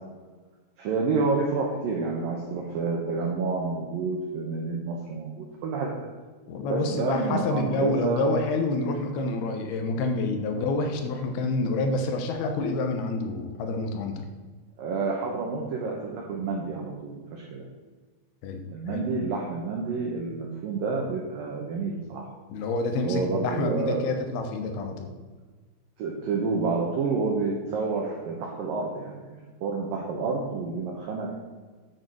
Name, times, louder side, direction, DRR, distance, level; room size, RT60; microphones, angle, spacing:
voice 1, 0.8-6.1 6.7-8.3 10.6-10.7 14.8-17.7 18.7-22.2 23.0-24.0 26.0-31.3, right 4 dB, 85° right, -1 dB, 2.0 m, -29 dB
voice 2, 6.5-14.3 18.4-18.6 18.9-19.1 22.5-25.1, left 2 dB, 80° left, 4 dB, 2.2 m, -28 dB
10.5 x 6.7 x 6.2 m, 1.4 s
omnidirectional pair, 5.9 m